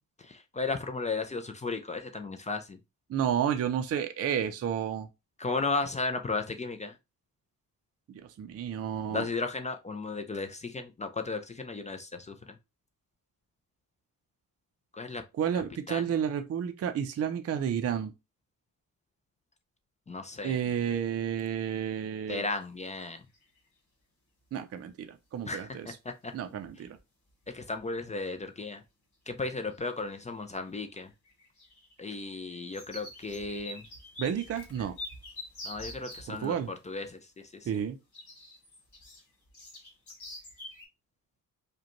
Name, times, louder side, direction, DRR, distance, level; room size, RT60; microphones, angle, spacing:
voice 1, 0.3-2.8 5.4-6.9 9.1-12.3 14.9-15.2 15.9-16.0 20.1-20.6 22.3-23.2 25.5-25.7 26.2-26.3 27.5-28.8 29.3-31.1 32.0-33.8 35.6-36.5 36.9-37.2 37.5-37.7, left 3 dB, 20° left, 0.3 m, -34 dB
voice 2, 3.1-5.1 8.1-9.3 15.3-18.1 20.4-22.4 24.5-26.0 26.3-27.0 34.2-34.9 36.3-36.7 37.7-38.0, right 8 dB, 45° right, 0.4 m, -31 dB
sound 1, 22.4-22.7 23.0-23.6 25.5-25.6 26.3-26.4 26.6-27.0 27.3-27.8 28.4-28.5 29.6-30.0 30.3-36.3 38.1-40.9, left 2 dB, 55° left, 1.9 m, -46 dB
4.9 x 2.2 x 2.9 m
wide cardioid pair, 155°, 35 cm